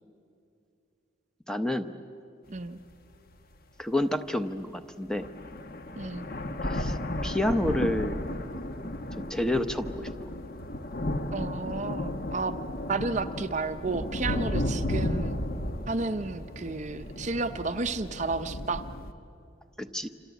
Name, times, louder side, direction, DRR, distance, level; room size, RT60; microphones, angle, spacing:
voice 1, 1.5-1.9 3.8-5.3 6.7-7.0 7.2-8.2 9.2-10.1 19.8-20.1, left 1 dB, 5° left, 8 dB, 0.8 m, -29 dB
voice 2, 2.5-2.8 6.0-6.3 11.3-12.6 12.9-15.4 15.9-18.8, right 3 dB, 35° right, 9 dB, 0.6 m, -32 dB
sound 1, 2.6-2.7 3.3-3.4 4.7-4.8 5.1-19.1, left 1 dB, 45° left, 1.2 m, -34 dB
27.0 x 26.5 x 8.2 m, 2.6 s
head